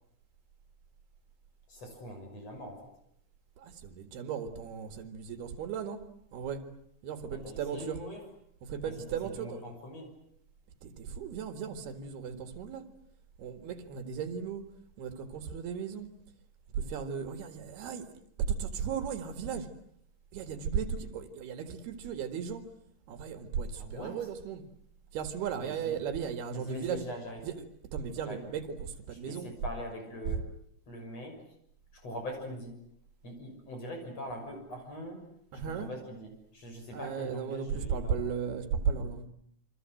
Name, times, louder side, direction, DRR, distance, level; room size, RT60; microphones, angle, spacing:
voice 1, 1.7-2.9 7.3-8.2 8.8-10.1 23.7-24.3 25.6-26.0 26.5-27.4 28.2-28.4 29.1-30.4 30.9-31.4 32.0-32.7 33.2-35.2 35.6-38.2, equal, 40° left, 4 dB, 7.4 m, -42 dB
voice 2, 3.6-6.0 6.3-6.6 7.0-8.0 8.6-9.6 10.8-12.9 13.4-14.6 15.0-16.1 16.7-18.1 18.5-19.7 20.3-22.6 23.1-24.7 25.1-27.0 27.4-27.5 27.9-29.5 35.5-35.9 36.9-39.3, right 7 dB, 80° right, 8 dB, 3.9 m, -36 dB
28.0 x 25.0 x 7.8 m, 0.70 s
omnidirectional pair, 4.5 m